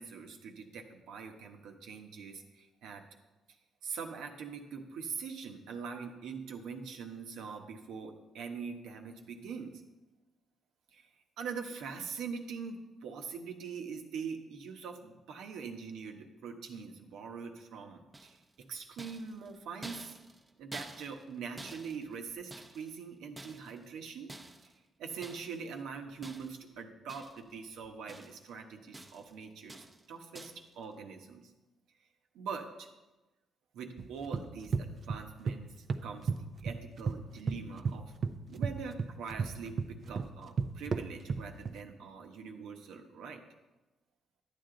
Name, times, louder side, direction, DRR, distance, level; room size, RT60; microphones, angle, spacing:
voice 1, 0.0-3.0 3.8-9.7 10.9-11.1 11.4-20.2 20.6-24.3 24.6-24.7 25.0-31.5 32.3-32.9 33.7-38.1 38.5-43.4, right 5 dB, 85° right, 4 dB, 1.1 m, -43 dB
sound 1, 18.1-18.6 19.0-21.3 21.6-23.0 23.4-23.9 24.3-24.8 25.2-25.6 26.2-26.7 27.1-27.6 27.8-28.5 28.9-29.3 29.7-30.1 30.3-30.7, right 2 dB, 15° right, 0.8 m, -49 dB
sound 2, 34.0-35.6 35.9-37.2 37.5-41.8, right 5 dB, 50° right, 0.6 m, -34 dB
12.0 x 8.6 x 3.9 m, 1.1 s
cardioid pair, 90°, 0 cm